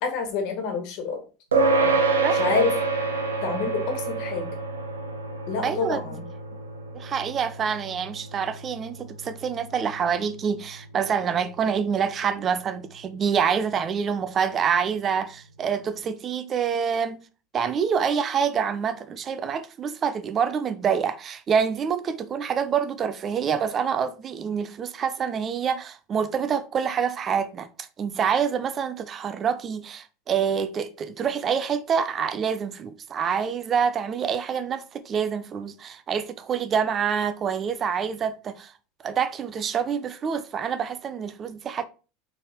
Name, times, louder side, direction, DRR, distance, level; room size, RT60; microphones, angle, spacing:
voice 1, 0.0-1.2 1.8-1.9 2.3-2.7 3.4-4.5 5.5-6.2, left 5 dB, 60° left, 1.5 m, -27 dB
sound 1, 1.5-11.2, right 3 dB, 90° right, 0.7 m, -27 dB
voice 2, 5.6-6.0 6.9-17.2 17.5-38.7 39.0-41.8, right 7 dB, 35° right, 0.5 m, -26 dB
4.2 x 3.4 x 3.5 m
hypercardioid pair, 85°, 0 cm